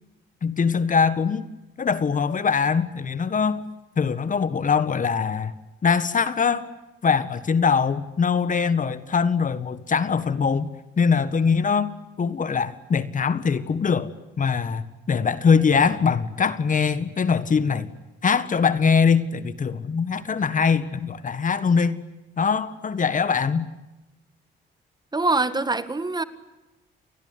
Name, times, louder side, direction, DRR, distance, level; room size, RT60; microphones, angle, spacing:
voice 1, 0.4-1.4 1.8-3.6 4.0-5.5 5.8-6.7 7.0-10.7 11.0-11.9 12.2-17.9 18.2-22.0 22.4-23.7, left 5 dB, 40° left, 1.7 m, -22 dB
voice 2, 25.1-26.2, right 3 dB, 20° right, 1.8 m, -24 dB
29.5 x 20.5 x 9.6 m
cardioid pair, 90°, 20 cm